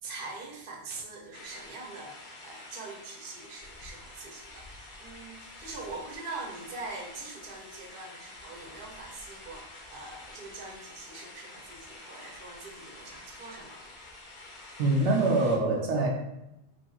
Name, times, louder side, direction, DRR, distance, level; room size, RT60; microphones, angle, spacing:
voice 1, 0.0-13.9, right 3 dB, 60° right, -1 dB, 0.8 m, -43 dB
sound 1, 1.3-15.6, left 2 dB, 50° left, 0.7 m, -48 dB
voice 2, 14.8-16.1, right 2 dB, 85° right, 0 dB, 0.9 m, -24 dB
3.2 x 2.7 x 2.3 m, 0.89 s
omnidirectional pair, 1.1 m